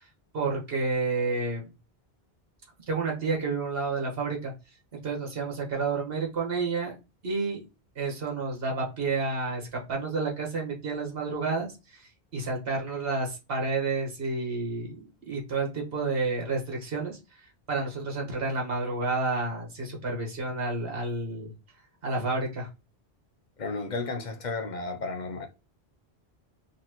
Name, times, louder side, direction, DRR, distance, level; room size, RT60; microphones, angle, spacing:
voice 1, 0.3-1.7 2.9-4.5 5.0-6.9 7.2-7.6 8.0-15.0 15.3-17.2 17.7-21.5 22.0-22.7, right 3 dB, 70° right, 1.7 m, -30 dB
voice 2, 23.6-25.5, left 3 dB, 50° left, 0.8 m, -33 dB
4.1 x 2.9 x 2.9 m
omnidirectional pair, 1.0 m